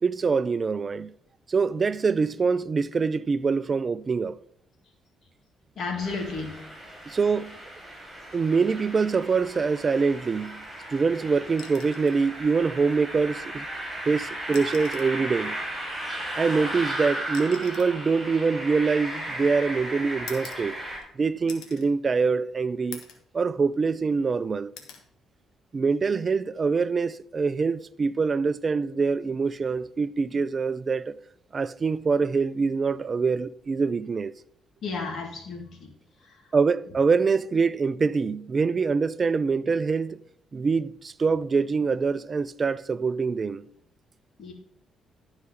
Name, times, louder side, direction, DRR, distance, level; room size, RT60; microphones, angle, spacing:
voice 1, 0.0-1.1 1.5-4.4 7.1-7.6 8.3-10.6 10.9-13.7 14.1-15.6 16.4-20.8 21.2-23.0 23.3-24.7 25.7-31.1 31.5-34.3 36.5-40.2 40.5-43.7, right 4 dB, 35° right, 0.4 m, -24 dB
voice 2, 5.8-6.5 34.8-35.9 36.2-36.4 44.4-44.5, left 4 dB, 60° left, 2.3 m, -32 dB
sound 1, 6.0-21.0, right 1 dB, 10° right, 4.3 m, -36 dB
sound 2, 11.6-12.2 13.6-13.8 14.4-15.2 16.4-19.4 20.3-21.1 21.5-21.9 22.3-22.4 22.9-23.3 23.7-24.3 24.8-25.1 26.5-26.8, left 6 dB, 90° left, 1.4 m, -46 dB
11.5 x 4.8 x 5.6 m
cardioid pair, 90°, 0 cm